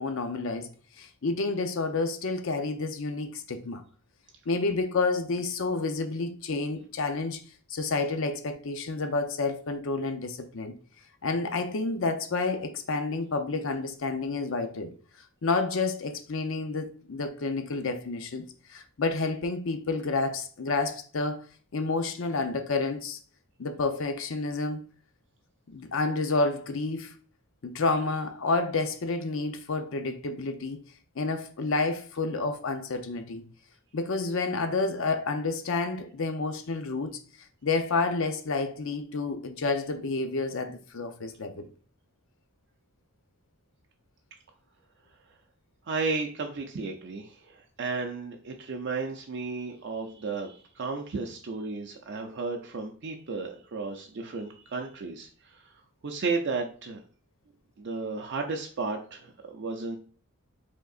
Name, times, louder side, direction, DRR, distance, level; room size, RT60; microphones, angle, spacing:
voice 1, 0.0-3.8 4.5-7.4 7.7-10.7 11.2-14.9 15.4-21.4 21.7-23.2 23.6-24.8 25.7-27.1 27.6-30.8 31.2-33.4 33.9-37.2 37.6-41.7, left 3 dB, 60° left, 0.6 m, -29 dB
voice 2, 45.9-55.7 56.0-57.0 57.8-60.0, right 4 dB, 55° right, 0.5 m, -33 dB
5.2 x 3.6 x 2.4 m
head